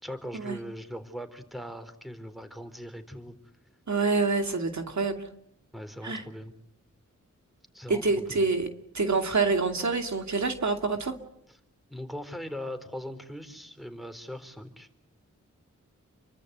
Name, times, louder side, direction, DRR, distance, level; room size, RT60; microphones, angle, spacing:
voice 1, 0.0-3.3 5.7-6.5 7.7-8.4 11.9-14.9, equal, ahead, 9 dB, 4.1 m, -40 dB
voice 2, 3.9-5.2 6.0-6.2 7.9-8.7 8.9-11.2, right 4 dB, 65° right, 5 dB, 2.6 m, -26 dB
29.5 x 24.0 x 8.2 m, 0.73 s
wide cardioid pair, 80°, 31 cm